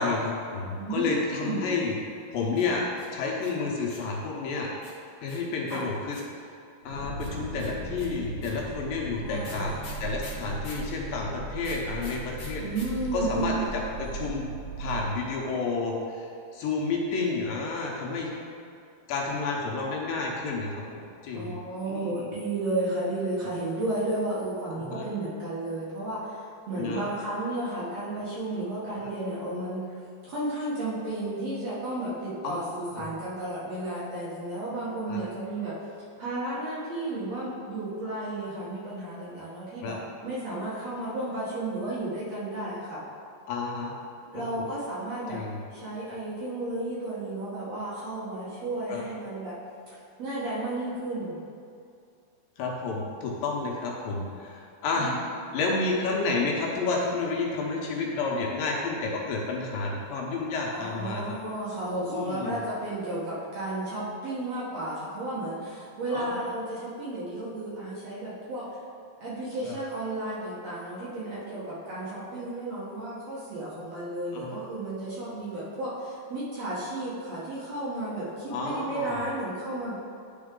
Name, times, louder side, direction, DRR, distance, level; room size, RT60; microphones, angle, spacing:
voice 1, 0.0-1.9 2.3-2.8 3.1-4.7 5.2-6.2 6.9-12.6 13.1-14.5 14.8-18.3 19.1-20.8 21.2-21.6 21.9-22.3 24.7-25.1 26.8-27.0 29.0-29.1 32.4-33.1 35.1-35.2 39.8-40.0 43.5-43.9 44.3-44.6 45.3-45.6 48.9-49.0 52.6-55.2 55.5-61.3 62.1-62.6 66.1-66.3 69.6-69.8 74.3-74.6 78.5-79.3, left 3 dB, 75° left, -2 dB, 2.5 m, -30 dB
voice 2, 0.8-1.6 5.7-5.9 9.2-9.7 12.6-13.7 21.3-30.0 30.3-35.8 36.2-43.0 44.3-45.4 45.7-49.6 50.2-51.4 54.9-55.2 60.7-68.7 69.2-79.9, right 2 dB, 55° right, -9 dB, 2.0 m, -33 dB
sound 1, 2.5-4.2 4.8-6.4 7.2-10.9 11.6-12.9 13.1-13.2 13.4-13.9, left 3 dB, 55° left, 1.3 m, -47 dB
sound 2, 6.8-15.1, right 3 dB, 75° right, 1.2 m, -37 dB
11.0 x 4.4 x 3.7 m, 2.5 s
omnidirectional pair, 4.3 m